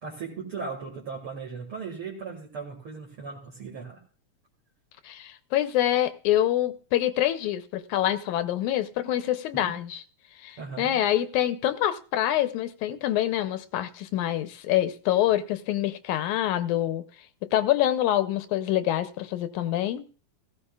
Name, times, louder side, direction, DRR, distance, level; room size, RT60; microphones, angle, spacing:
voice 1, 0.0-4.0 9.6-9.7 10.6-11.0, right 5 dB, 50° right, 2.6 m, -37 dB
voice 2, 5.0-10.0 10.4-17.0 17.5-20.1, left 12 dB, 90° left, 2.2 m, -26 dB
15.5 x 15.5 x 2.4 m
omnidirectional pair, 3.3 m